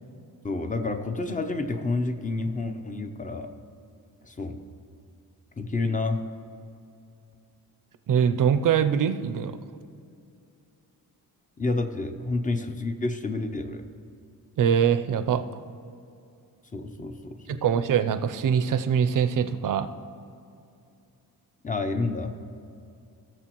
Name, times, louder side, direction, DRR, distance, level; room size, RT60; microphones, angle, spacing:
voice 1, 0.4-3.5 4.2-4.6 5.6-6.2 11.6-13.8 16.7-17.6 21.6-22.3, left 3 dB, 20° left, 7 dB, 0.6 m, -29 dB
voice 2, 8.1-9.6 14.6-15.4 17.5-19.9, right 8 dB, 60° right, 11 dB, 0.5 m, -23 dB
17.0 x 6.8 x 3.0 m, 2.5 s
cardioid pair, 105°, 37 cm